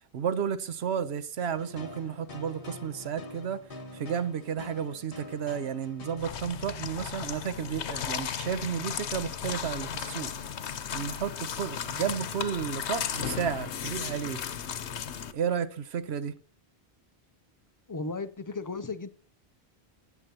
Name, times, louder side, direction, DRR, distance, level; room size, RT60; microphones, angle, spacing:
voice 1, 0.1-3.6 3.9-10.3 10.9-14.4 15.3-16.3, right 8 dB, 75° right, 1.0 m, -32 dB
sound 1, 1.5-6.5, left 2 dB, 60° left, 1.7 m, -45 dB
sound 2, 6.2-15.3, left 8 dB, 90° left, 1.1 m, -35 dB
voice 2, 17.9-19.1, left 3 dB, 30° left, 0.4 m, -35 dB
16.5 x 7.0 x 2.8 m
omnidirectional pair, 1.1 m